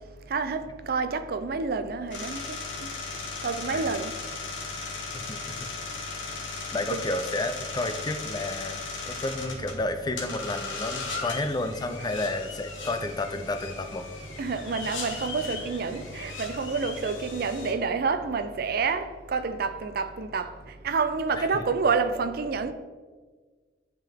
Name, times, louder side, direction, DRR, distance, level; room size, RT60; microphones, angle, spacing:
voice 1, 0.3-2.6 3.4-4.1 6.9-7.0 14.4-20.5 20.8-22.7, right 4 dB, 50° right, 0.4 m, -28 dB
sound 1, 2.1-17.7, left 4 dB, 85° left, 1.3 m, -37 dB
voice 2, 5.1-5.7 6.7-8.8 9.0-14.1 21.4-21.6, left 2 dB, 20° left, 0.3 m, -31 dB
10.5 x 3.8 x 3.4 m
head